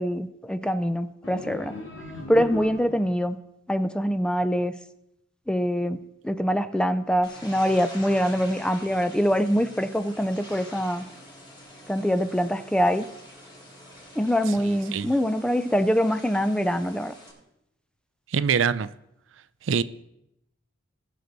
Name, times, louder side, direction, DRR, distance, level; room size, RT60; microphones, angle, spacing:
voice 1, 0.0-1.8 2.3-3.4 3.7-4.7 5.5-11.0 11.9-13.1 14.2-17.1, equal, 5° left, 0.4 m, -24 dB
sound 1, 1.2-3.3, left 2 dB, 85° left, 2.1 m, -37 dB
sound 2, 7.2-17.3, left 1 dB, 25° left, 3.5 m, -46 dB
voice 2, 14.5-15.1 18.3-18.9 19.6-19.8, right 6 dB, 70° right, 0.4 m, -25 dB
19.5 x 6.5 x 4.0 m
head